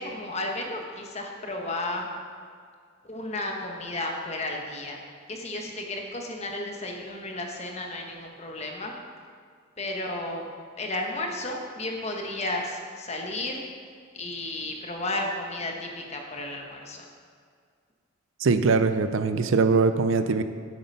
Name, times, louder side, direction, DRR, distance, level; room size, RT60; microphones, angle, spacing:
voice 1, 0.0-2.1 3.0-5.0 5.3-8.9 9.8-10.5 10.8-13.6 14.1-17.1, left 2 dB, 30° left, 2 dB, 1.1 m, -33 dB
voice 2, 18.4-20.4, right 4 dB, 70° right, 10 dB, 0.5 m, -22 dB
8.4 x 7.8 x 5.4 m, 2.1 s
head